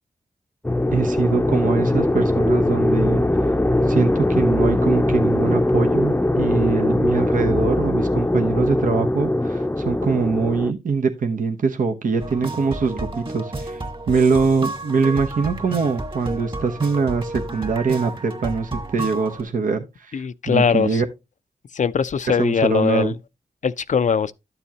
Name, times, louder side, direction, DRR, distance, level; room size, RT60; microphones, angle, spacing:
sound 1, 0.6-10.7, left 1 dB, 15° left, 0.6 m, -20 dB
voice 1, 0.9-3.2 3.9-13.8 14.1-21.0 22.3-23.1, right 5 dB, 70° right, 0.9 m, -23 dB
sound 2, 12.2-19.4, right 2 dB, 35° right, 2.0 m, -31 dB
voice 2, 20.1-21.0 21.8-23.1 23.6-24.3, left 6 dB, 60° left, 0.5 m, -21 dB
12.0 x 7.0 x 2.8 m
cardioid pair, 55°, 14 cm